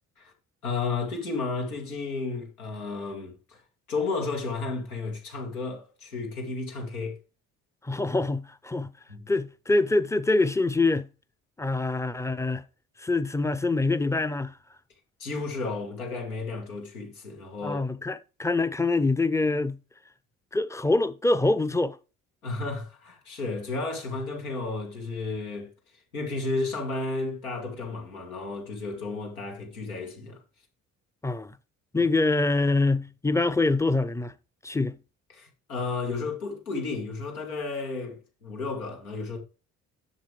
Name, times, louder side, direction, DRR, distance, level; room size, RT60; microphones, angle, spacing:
voice 1, 0.6-3.6 3.9-7.2 9.1-9.3 15.2-17.9 22.4-25.7 26.1-30.4 32.0-32.1 35.3-39.4, left 3 dB, 85° left, 1.9 m, -33 dB
voice 2, 7.8-8.9 9.3-11.1 11.6-12.6 13.0-14.5 17.6-19.8 20.5-22.0 31.2-31.6 31.9-34.3 34.6-35.0, left 2 dB, 5° left, 0.6 m, -25 dB
7.4 x 7.4 x 3.3 m
figure-of-eight pair, 45°, 42 cm